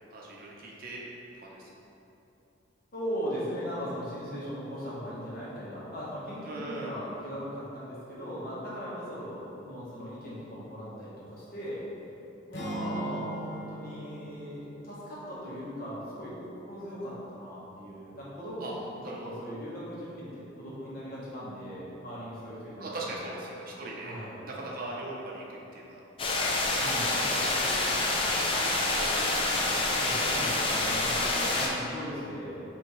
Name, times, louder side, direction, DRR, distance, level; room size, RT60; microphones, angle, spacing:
voice 1, 0.1-1.0 1.3-1.6 6.5-6.9 18.6-18.7 19.0-19.2 22.8-24.1 24.5-25.4 25.7-26.0 26.9-27.7 28.1-28.5 31.3-31.6, right 2 dB, 50° right, -3 dB, 0.6 m, -40 dB
voice 2, 2.9-11.8 12.5-16.3 16.6-18.8 19.2-23.1 24.0-24.4 26.7-27.2 30.0-32.6, equal, 50° left, -8 dB, 1.2 m, -38 dB
sound 1, 12.5-16.7, right 1 dB, 70° left, 0.8 m, -40 dB
sound 2, 26.2-31.7, left 2 dB, 30° left, 0.4 m, -27 dB
5.6 x 2.8 x 3.1 m, 2.9 s
head